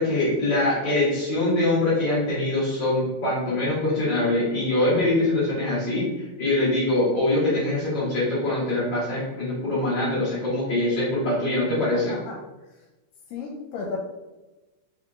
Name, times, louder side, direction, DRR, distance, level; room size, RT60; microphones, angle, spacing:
voice 1, 0.0-12.2, left 2 dB, 45° left, -7 dB, 1.5 m, -23 dB
voice 2, 11.9-12.4 12.7-12.8 13.3-14.0, left 4 dB, 85° left, -1 dB, 2.2 m, -34 dB
5.1 x 3.6 x 2.5 m, 1.1 s
omnidirectional pair, 4.0 m